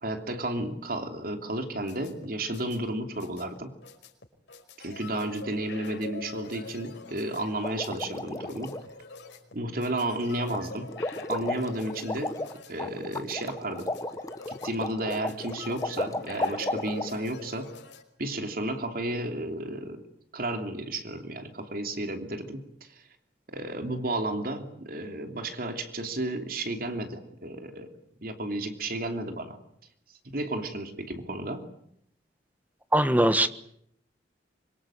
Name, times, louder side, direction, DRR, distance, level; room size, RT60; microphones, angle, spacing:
voice 1, 0.0-3.8 4.8-8.8 9.5-10.9 11.3-12.4 12.7-13.9 14.5-17.7 18.2-20.0 20.3-23.0 23.5-27.9 28.2-29.6 30.3-31.7, right 1 dB, 55° right, 6 dB, 2.9 m, -32 dB
sound 1, 1.6-18.0, left 4 dB, 90° left, 5.3 m, -45 dB
sound 2, 7.6-8.8 10.5-10.6 10.9-17.1, left 2 dB, 20° left, 1.3 m, -34 dB
voice 2, 32.9-33.5, right 1 dB, 10° right, 11 dB, 1.3 m, -21 dB
25.5 x 24.0 x 8.9 m, 0.71 s
head